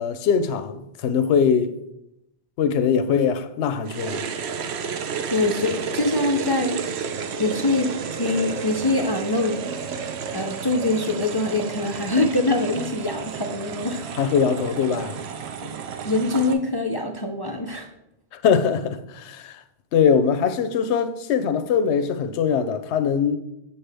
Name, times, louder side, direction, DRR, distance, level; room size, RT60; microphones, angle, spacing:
voice 1, 0.0-1.7 2.6-4.2 14.2-15.2 18.3-19.6 19.9-23.4, left 6 dB, 90° left, 0.9 m, -22 dB
sound 1, 3.8-16.5, right 6 dB, 75° right, 0.9 m, -31 dB
voice 2, 5.3-6.8 7.4-9.6 10.3-14.1 15.7-17.9, left 2 dB, 35° left, 0.3 m, -24 dB
6.9 x 5.7 x 3.4 m
omnidirectional pair, 1.1 m